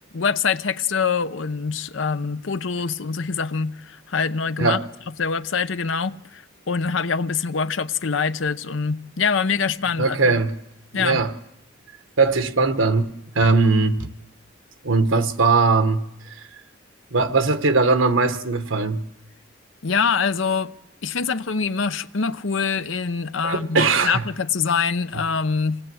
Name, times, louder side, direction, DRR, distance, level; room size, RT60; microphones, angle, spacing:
voice 1, 0.1-4.8 5.2-10.3 10.9-11.2 19.8-20.7 21.0-25.8, left 5 dB, 80° left, 0.8 m, -24 dB
voice 2, 10.0-10.5 10.9-11.3 12.2-14.1 14.8-16.0 17.1-19.0 23.4-24.2, right 3 dB, 90° right, 1.4 m, -20 dB
27.0 x 19.0 x 7.8 m
head